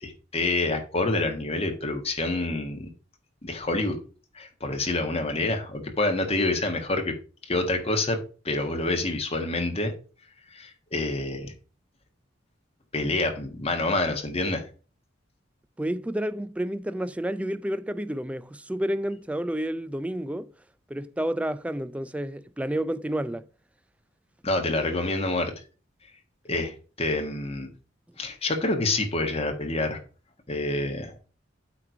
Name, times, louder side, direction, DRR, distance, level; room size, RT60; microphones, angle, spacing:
voice 1, 0.0-2.9 3.4-4.0 4.3-7.1 7.4-8.2 8.4-9.9 10.5-11.5 12.9-14.6 24.4-25.5 26.5-27.7 28.2-30.0 30.5-31.2, left 2 dB, 30° left, 1.5 m, -27 dB
voice 2, 15.8-20.5 20.9-23.4, right 1 dB, 5° right, 0.3 m, -30 dB
8.5 x 3.4 x 5.8 m
head